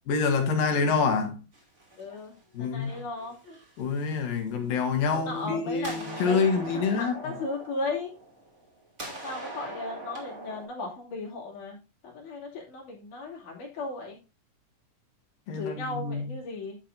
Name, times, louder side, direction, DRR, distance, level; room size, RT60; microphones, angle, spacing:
voice 1, 0.1-1.4 2.5-3.0 3.8-7.4 15.5-16.4, left 5 dB, 90° left, 3.4 m, -27 dB
sound 1, 1.5-2.4 2.8-4.4 5.0-5.5 5.7-8.7 9.0-10.6, right 2 dB, 20° right, 2.6 m, -42 dB
voice 2, 2.0-2.3 2.6-3.4 5.1-8.1 9.1-11.8 12.0-14.2 15.5-16.8, left 2 dB, 65° left, 4.1 m, -36 dB
11.0 x 7.4 x 2.6 m
omnidirectional pair, 3.9 m